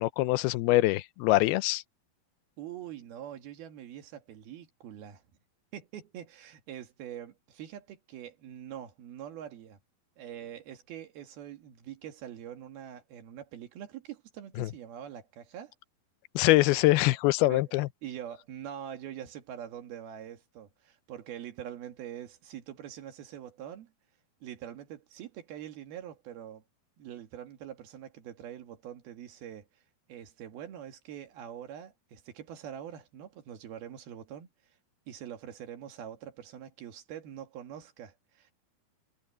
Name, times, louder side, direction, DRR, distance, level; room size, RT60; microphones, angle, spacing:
voice 1, 0.0-1.8 14.6-14.7 16.4-17.9, left 18 dB, 90° left, 2.5 m, -24 dB
voice 2, 2.6-5.2 5.7-9.8 10.2-15.7 17.5-17.7 18.0-23.9 24.4-26.6 27.0-29.7 30.1-34.5 35.1-38.5, right 10 dB, 80° right, 3.8 m, -44 dB
omnidirectional pair, 4.4 m